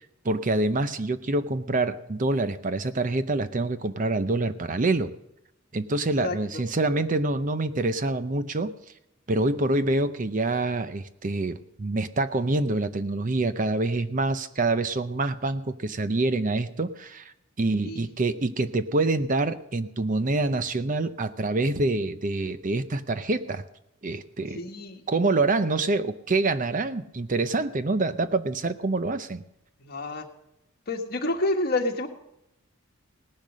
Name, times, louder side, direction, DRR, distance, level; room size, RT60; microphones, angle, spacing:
voice 1, 0.0-5.1 5.7-8.7 9.3-17.3 17.6-23.6 24.0-24.6 25.1-29.4, right 2 dB, 40° right, 12 dB, 0.7 m, -26 dB
voice 2, 24.5-25.0 29.8-30.2 30.9-32.1, left 2 dB, 50° left, 3 dB, 1.6 m, -28 dB
18.0 x 10.5 x 6.3 m, 0.83 s
head